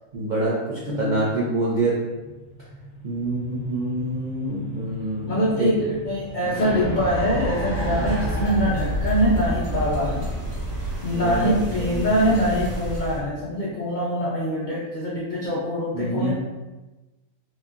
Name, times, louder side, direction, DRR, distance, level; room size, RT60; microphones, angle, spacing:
voice 1, 0.1-1.9 3.0-5.7 6.4-6.5 7.8-8.0 11.1-11.5 11.8-12.1 15.9-16.3, right 2 dB, 90° right, -6 dB, 0.4 m, -26 dB
voice 2, 0.8-1.3 5.3-10.3 11.0-16.3, equal, 85° left, -6 dB, 0.4 m, -24 dB
sound 1, 2.1-12.0, equal, 55° left, 0.8 m, -32 dB
Car, 5.7-13.5, right 2 dB, 15° right, 0.5 m, -39 dB
sound 2, 7.7-13.2, left 1 dB, 70° right, 1.3 m, -33 dB
3.0 x 2.2 x 2.4 m, 1.1 s
omnidirectional pair, 1.5 m